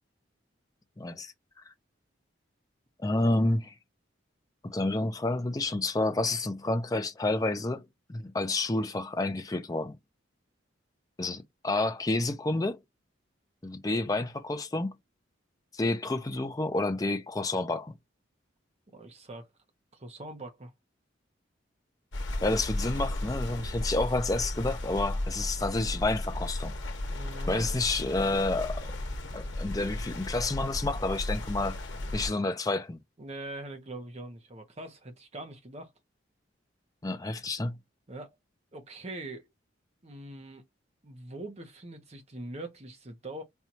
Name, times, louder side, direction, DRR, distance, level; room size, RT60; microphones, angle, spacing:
voice 1, 1.0-1.3 1.7-1.8 3.0-3.7 4.6-10.0 11.2-12.8 13.6-14.9 15.7-17.9 22.4-26.7 27.5-29.0 29.3-31.8 32.1-33.0 37.0-37.8, left 2 dB, 20° left, 0.5 m, -29 dB
voice 2, 18.9-19.5 19.9-20.7 27.1-27.6 33.2-35.9 38.1-38.3 38.7-39.5 40.0-40.6 41.0-43.4, right 2 dB, 35° right, 0.8 m, -42 dB
sound 1, 22.1-32.3, left 1 dB, 75° left, 1.0 m, -34 dB
4.4 x 2.4 x 2.7 m
head